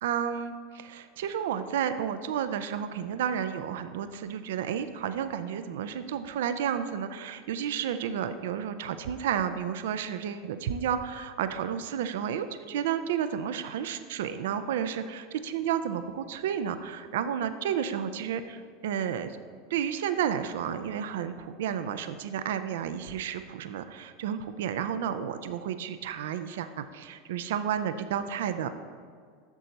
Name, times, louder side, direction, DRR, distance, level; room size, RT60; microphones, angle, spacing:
voice 1, 0.0-19.4 19.7-28.7, right 8 dB, 80° right, 10 dB, 0.4 m, -31 dB
8.2 x 6.4 x 4.0 m, 2.1 s
hypercardioid pair, 105°, 0 cm